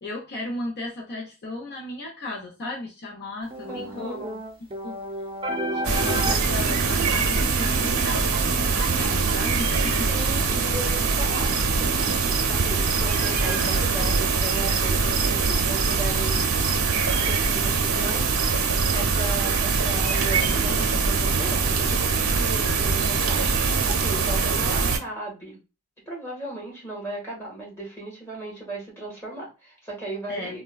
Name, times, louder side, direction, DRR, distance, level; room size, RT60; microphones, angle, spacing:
voice 1, 0.0-4.2 4.8-5.0 5.7-10.1 30.3-30.6, left 2 dB, 50° left, -1 dB, 0.7 m, -35 dB
sound 1, 3.5-10.3, right 1 dB, 25° right, 0.5 m, -33 dB
voice 2, 3.7-4.4 10.1-12.1 12.5-16.5 17.3-25.6 26.0-30.6, right 2 dB, 10° left, -5 dB, 1.4 m, -36 dB
sound 2, 5.8-25.0, right 4 dB, 90° right, 0.5 m, -23 dB
3.5 x 2.2 x 2.3 m, 0.30 s
head